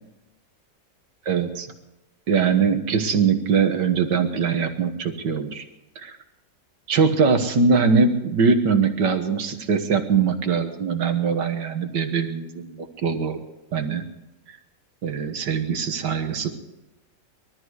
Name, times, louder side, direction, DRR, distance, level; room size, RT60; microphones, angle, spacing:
voice 1, 1.3-1.7 2.3-5.6 6.0-6.2 6.9-13.4 13.7-14.0 15.0-16.5, right 5 dB, 70° right, 6 dB, 2.0 m, -22 dB
21.5 x 13.5 x 4.8 m, 0.98 s
omnidirectional pair, 2.0 m